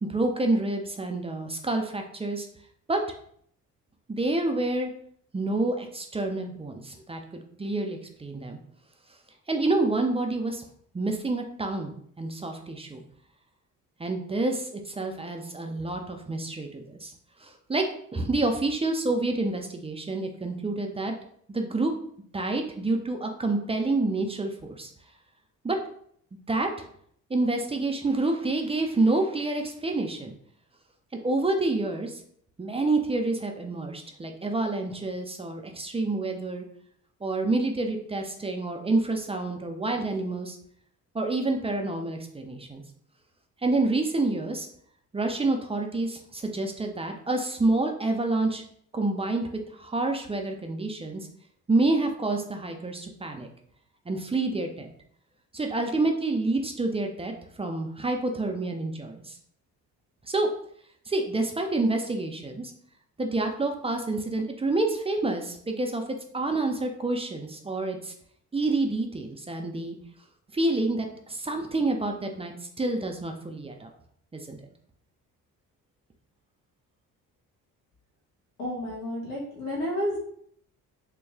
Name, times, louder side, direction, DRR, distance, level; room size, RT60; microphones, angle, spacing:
voice 1, 0.0-2.5 2.9-3.0 4.1-4.9 5.3-7.2 7.6-8.6 9.5-10.6 10.9-13.0 14.0-17.1 17.4-21.1 21.5-21.9 22.3-24.9 25.6-25.8 26.5-26.7 27.3-30.3 31.1-32.2 32.6-36.6 37.2-40.6 41.1-42.8 43.6-44.7 45.1-48.6 48.9-49.5 49.7-51.3 51.7-53.5 54.1-54.9 55.5-59.4 60.3-60.5 61.1-62.7 63.2-66.0 66.3-68.1 68.5-70.0 70.5-73.9 74.3-74.6, right 2 dB, 15° right, 3 dB, 0.5 m, -28 dB
voice 2, 78.6-80.2, left 1 dB, 75° left, -3 dB, 1.3 m, -31 dB
3.0 x 2.7 x 3.5 m, 0.64 s
figure-of-eight pair, 45°, 46 cm